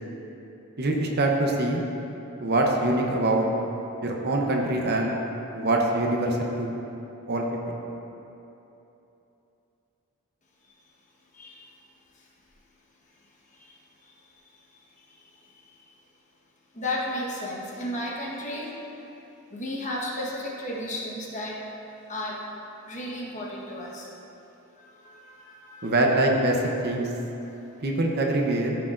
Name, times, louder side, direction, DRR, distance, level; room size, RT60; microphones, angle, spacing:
voice 1, 0.8-1.8 2.4-3.5 4.0-5.2 5.5-6.8 7.3-7.8 25.8-26.6 26.8-27.1 27.8-28.8, right 2 dB, 45° right, 1 dB, 0.8 m, -24 dB
voice 2, 16.7-18.7 19.5-21.6 22.1-22.4 22.9-24.1 24.8-26.2, left 1 dB, 35° left, -3 dB, 1.2 m, -33 dB
13.5 x 6.6 x 2.5 m, 3.0 s
head